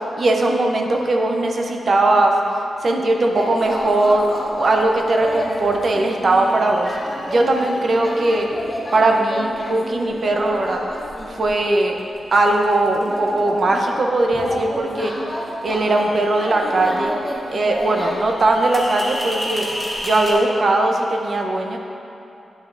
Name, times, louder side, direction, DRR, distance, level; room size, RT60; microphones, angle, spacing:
voice 1, 0.2-2.3 2.8-4.3 4.6-6.9 7.3-8.5 8.9-10.8 11.3-12.0 12.3-15.1 15.6-17.1 17.5-19.7 20.0-21.8, right 2 dB, 50° right, 2 dB, 0.6 m, -19 dB
sound 1, 3.3-20.3, left 1 dB, 15° left, 1.3 m, -30 dB
9.6 x 5.8 x 2.6 m, 2.8 s
wide cardioid pair, 105°, 0 cm